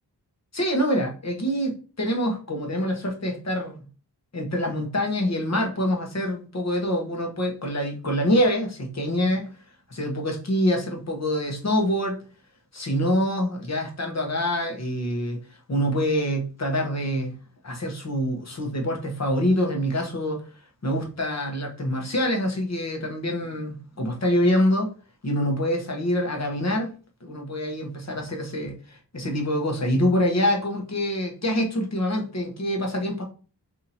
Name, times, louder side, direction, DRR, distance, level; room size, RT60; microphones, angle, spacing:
voice 1, 0.5-3.7 4.3-9.5 9.9-12.2 12.7-15.4 15.7-17.3 17.6-20.4 20.8-24.9 25.2-26.9 27.2-33.2, equal, 40° left, 1 dB, 1.0 m, -25 dB
2.8 x 2.7 x 4.0 m, 0.36 s
wide cardioid pair, 100°, 40 cm